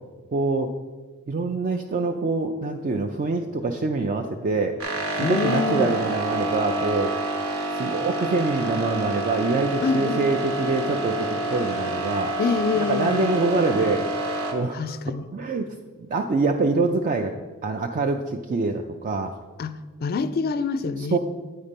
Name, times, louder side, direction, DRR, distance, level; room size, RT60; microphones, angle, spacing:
voice 1, 0.3-0.7 1.3-4.8 5.2-7.1 7.7-12.3 12.7-14.1 14.5-15.7 16.1-17.3 17.6-19.3 21.1-21.2, right 3 dB, 35° right, 4 dB, 0.4 m, -25 dB
sound 1, 4.8-14.5, right 2 dB, 70° right, 1.2 m, -28 dB
voice 2, 5.2-5.9 9.8-10.2 12.4-13.3 14.7-15.3 19.6-21.2, left 4 dB, 45° left, 14 dB, 0.3 m, -26 dB
8.9 x 4.2 x 5.1 m, 1.3 s
head